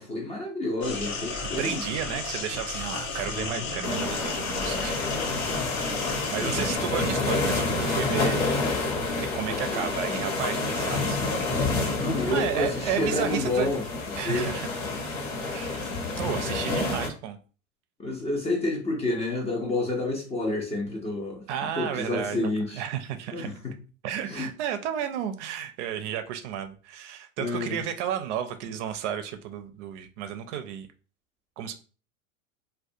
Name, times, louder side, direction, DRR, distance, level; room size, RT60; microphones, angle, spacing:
voice 1, 0.0-1.8 3.2-3.9 5.0-5.8 6.3-6.6 9.5-9.9 12.0-14.5 18.0-21.4 21.8-22.8 23.3-23.7 24.3-24.5 27.4-27.8, left 2 dB, 15° left, 0.4 m, -30 dB
sound 1, 0.8-6.8, left 4 dB, 90° left, 0.9 m, -34 dB
voice 2, 1.4-5.0 6.0-8.4 9.3-11.2 11.7-12.0 12.3-13.7 14.2-14.7 15.4-17.4 21.5-23.5 24.0-30.9 31.6-31.7, right 9 dB, 60° right, 0.5 m, -32 dB
sound 2, 3.8-17.1, left 3 dB, 60° left, 1.0 m, -29 dB
2.3 x 2.2 x 2.6 m
hypercardioid pair, 110°, 41 cm